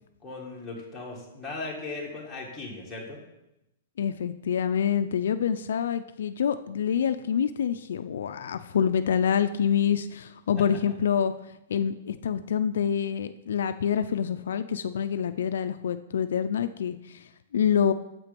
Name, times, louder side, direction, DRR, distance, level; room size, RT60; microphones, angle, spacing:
voice 1, 0.2-3.2, left 3 dB, 5° left, -5 dB, 1.9 m, -37 dB
voice 2, 4.0-11.3 11.7-17.9, left 8 dB, 70° left, 10 dB, 0.5 m, -26 dB
9.0 x 7.6 x 5.2 m, 0.89 s
hypercardioid pair, 170°, 0 cm